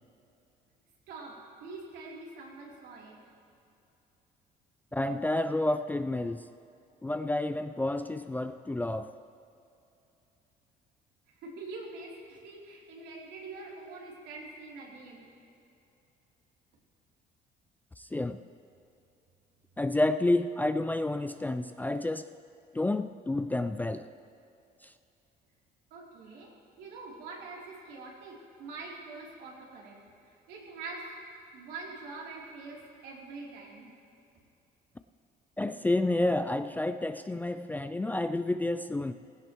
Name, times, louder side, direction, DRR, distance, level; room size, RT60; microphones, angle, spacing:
voice 1, 1.1-3.2 11.3-15.3 25.9-31.2 31.5-33.9, right 3 dB, 80° right, -4 dB, 3.2 m, -45 dB
voice 2, 4.9-6.4 7.0-9.1 18.0-18.4 19.8-22.3 22.7-24.1 35.6-39.1, left 2 dB, 10° left, 10 dB, 0.3 m, -30 dB
16.5 x 16.0 x 3.0 m, 2.7 s
cardioid pair, 110°, 17 cm